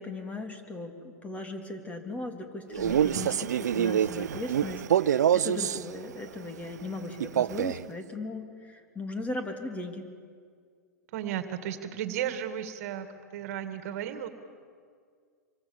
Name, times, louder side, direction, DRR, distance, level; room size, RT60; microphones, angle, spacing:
voice 1, 0.0-10.1, left 2 dB, 15° left, 5 dB, 3.2 m, -38 dB
Male speech man speaking, 2.7-5.8 7.2-7.9, right 9 dB, 75° right, 0.6 m, -26 dB
voice 2, 11.1-13.1 13.3-14.3, right 10 dB, 60° right, 9 dB, 2.1 m, -34 dB
26.5 x 24.0 x 7.2 m, 2.1 s
hypercardioid pair, 105°, 9 cm